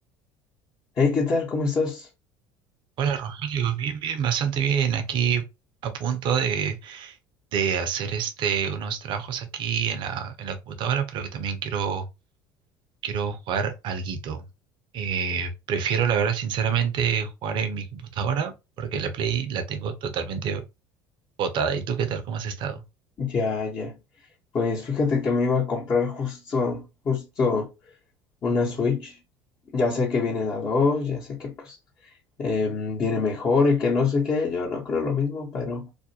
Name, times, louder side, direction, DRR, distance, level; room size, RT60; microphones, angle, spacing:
voice 1, 1.0-2.1 23.2-24.0 24.5-27.7 28.4-29.2 29.7-31.8 32.4-35.9, left 4 dB, 40° left, 0.9 m, -25 dB
voice 2, 3.0-5.4 5.8-7.2 7.5-12.1 13.0-14.4 14.9-18.5 18.8-20.6 21.4-22.8, right 7 dB, 55° right, 0.6 m, -27 dB
2.4 x 2.1 x 2.7 m
hypercardioid pair, 70°, 10 cm